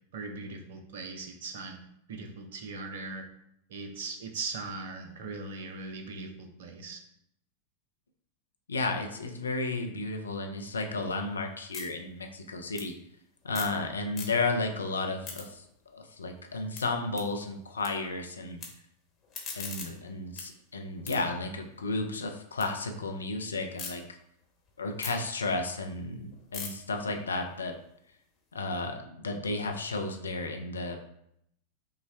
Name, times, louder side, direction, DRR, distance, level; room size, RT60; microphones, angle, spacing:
voice 1, 0.1-1.8 2.1-3.3 3.7-7.0, right 3 dB, 55° right, 5 dB, 0.6 m, -39 dB
voice 2, 8.7-12.9 13.4-15.7 15.9-18.6 19.6-24.0 24.8-27.7 28.5-31.1, left 3 dB, 75° left, 4 dB, 0.5 m, -33 dB
sound 1, 10.8-13.8 14.1-14.7 15.0-17.9 18.2-18.7 19.1-22.7 23.1-23.9 24.4-28.5, left 5 dB, 30° left, 1.1 m, -45 dB
5.4 x 2.2 x 3.4 m, 0.74 s
figure-of-eight pair, 90°, 0 cm